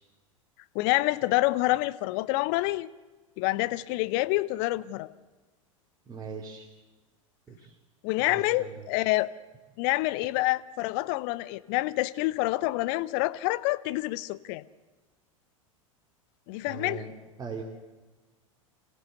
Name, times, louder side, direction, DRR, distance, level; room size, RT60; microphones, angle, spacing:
voice 1, 0.7-2.9 3.4-5.1 8.0-9.3 9.8-14.6 16.5-17.0, left 19 dB, 45° left, 16 dB, 0.8 m, -27 dB
voice 2, 6.1-6.7 7.5-7.8 8.3-8.9 16.7-17.1 17.4-17.6, right 5 dB, 20° right, -1 dB, 2.8 m, -40 dB
26.5 x 16.0 x 8.1 m, 1.2 s
figure-of-eight pair, 85°, 17 cm